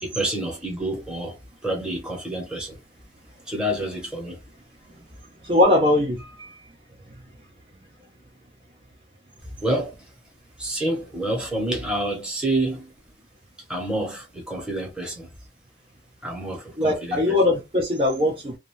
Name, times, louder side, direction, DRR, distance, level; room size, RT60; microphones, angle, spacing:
voice 1, 0.0-2.8 3.5-4.4 9.6-10.0 10.6-12.9 13.7-15.3 16.2-17.4, right 1 dB, 5° right, 0.9 m, -28 dB
voice 2, 5.4-6.5 16.8-18.6, left 1 dB, 30° right, 0.6 m, -21 dB
2.5 x 2.3 x 3.0 m
head